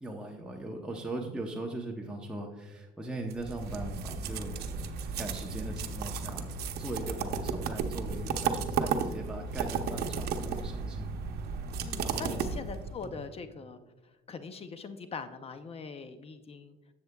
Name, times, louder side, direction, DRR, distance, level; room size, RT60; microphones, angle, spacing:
voice 1, 0.0-4.6 5.2-11.1 12.0-12.5 13.0-13.2, right 1 dB, 5° right, 0 dB, 0.8 m, -40 dB
sound 1, 3.3-13.0, right 5 dB, 70° right, 0.8 m, -34 dB
voice 2, 11.8-13.8 14.3-16.8, left 5 dB, 35° left, 10 dB, 0.6 m, -42 dB
10.0 x 7.8 x 2.3 m, 1.2 s
cardioid pair, 110°, 17 cm